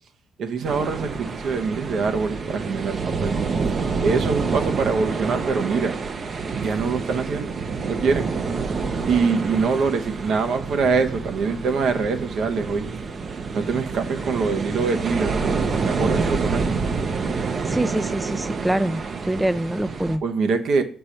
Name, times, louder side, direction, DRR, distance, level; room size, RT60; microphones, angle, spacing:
voice 1, 0.4-3.4 4.0-5.9 6.5-7.5 7.8-8.3 9.1-12.9 13.5-15.6 15.8-16.6 20.2-20.8, right 4 dB, 70° right, 1.0 m, -24 dB
sound 1, 0.6-20.2, right 4 dB, 45° right, 0.7 m, -27 dB
voice 2, 17.7-19.0 19.3-20.2, right 1 dB, 10° right, 0.3 m, -24 dB
6.8 x 5.3 x 4.3 m
cardioid pair, 90°, 0 cm